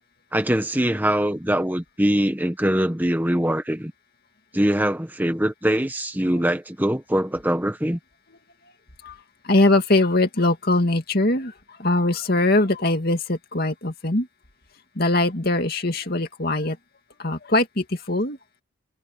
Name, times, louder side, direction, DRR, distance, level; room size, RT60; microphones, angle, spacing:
voice 1, 0.3-3.9 4.5-8.0, right 1 dB, 10° right, 1.2 m, -23 dB
voice 2, 9.5-11.5 11.8-14.3 15.0-16.8 17.2-18.4, left 2 dB, 45° left, 2.4 m, -21 dB
head